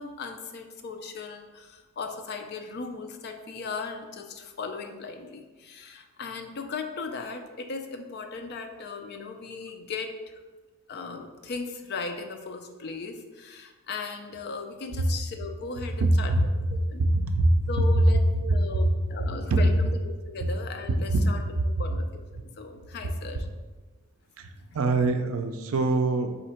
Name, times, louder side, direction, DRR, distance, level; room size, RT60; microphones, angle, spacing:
voice 1, 0.0-10.1 10.9-16.4 16.9-17.0 17.7-18.2 18.5-21.4 21.8-23.5, left 4 dB, 50° left, 5 dB, 0.4 m, -37 dB
voice 2, 16.0-16.7 17.0-17.6 18.0-18.1 18.3-18.6 19.2-19.6 20.4-20.5 21.1-21.2 21.6-21.7 24.4-26.4, right 2 dB, 65° right, 7 dB, 0.4 m, -24 dB
4.1 x 2.8 x 4.3 m, 1.3 s
head